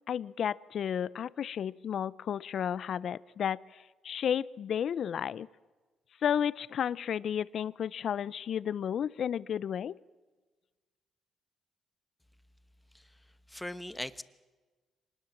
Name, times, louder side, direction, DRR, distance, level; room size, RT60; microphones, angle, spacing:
voice 1, 0.1-5.5 6.2-10.0, left 8 dB, 60° left, 20 dB, 0.6 m, -32 dB
voice 2, 13.5-14.2, left 1 dB, 5° left, 14 dB, 1.1 m, -39 dB
24.5 x 20.0 x 7.3 m, 1.3 s
cardioid pair, 90°, 0 cm